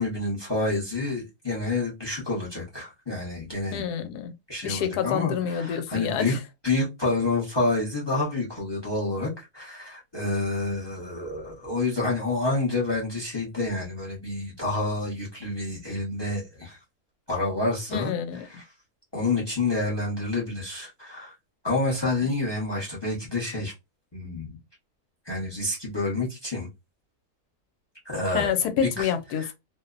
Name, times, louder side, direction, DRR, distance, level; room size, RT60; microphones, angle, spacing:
voice 1, 0.0-3.9 4.5-6.4 6.6-16.8 17.3-18.1 18.5-18.6 19.1-21.3 21.6-23.7 24.1-24.6 25.2-26.7 28.0-28.5 28.8-29.5, left 2 dB, 25° left, 0.6 m, -28 dB
voice 2, 3.7-4.3 4.6-6.4 17.9-18.5 28.3-29.5, left 8 dB, 85° left, 1.1 m, -27 dB
2.7 x 2.0 x 2.4 m
omnidirectional pair, 1.6 m